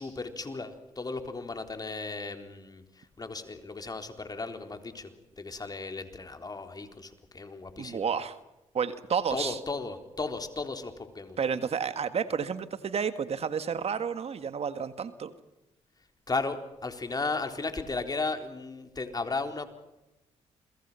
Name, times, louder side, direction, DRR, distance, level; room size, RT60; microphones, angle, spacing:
voice 1, 0.0-8.1 9.3-11.4 16.3-19.6, left 3 dB, 30° left, 6 dB, 3.9 m, -35 dB
voice 2, 7.8-8.4 8.7-9.6 11.4-15.3, right 6 dB, 55° right, 11 dB, 1.7 m, -31 dB
29.5 x 23.0 x 5.7 m, 0.95 s
cardioid pair, 65°, 12 cm